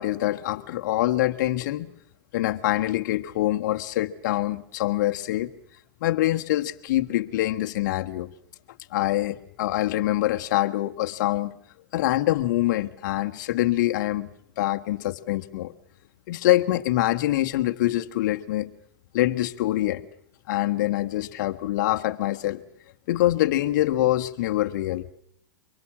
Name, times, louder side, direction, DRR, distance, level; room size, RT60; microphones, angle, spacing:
voice 1, 0.0-1.9 2.3-5.5 6.0-8.3 8.9-11.6 11.9-14.3 14.6-15.7 16.3-18.7 19.1-20.0 20.5-22.6 23.1-25.1, left 15 dB, 60° left, 1.4 m, -25 dB
24.5 x 22.5 x 7.4 m
hypercardioid pair, 125°, 11 cm